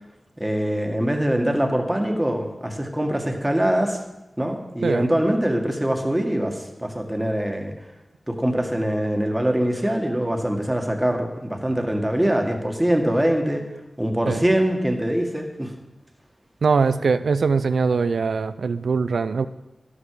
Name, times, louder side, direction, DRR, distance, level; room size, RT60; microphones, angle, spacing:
voice 1, 0.4-4.0 4.4-7.7 8.3-13.6 14.0-15.7, right 1 dB, 10° right, 3 dB, 1.7 m, -23 dB
voice 2, 16.6-19.5, right 5 dB, 90° right, 13 dB, 0.5 m, -22 dB
12.5 x 12.0 x 4.9 m, 0.98 s
wide cardioid pair, 85°, 0 cm